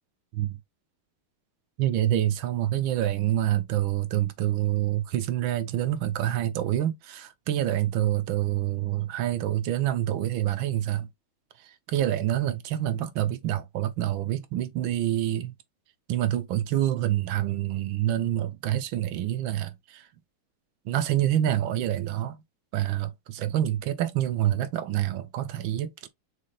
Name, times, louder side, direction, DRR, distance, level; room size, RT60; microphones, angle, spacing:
voice 1, 1.8-11.1 11.9-15.5 16.1-20.1 20.9-22.4 22.7-26.1, right 12 dB, 75° right, 1.4 m, -27 dB
6.5 x 3.4 x 2.2 m
omnidirectional pair, 2.3 m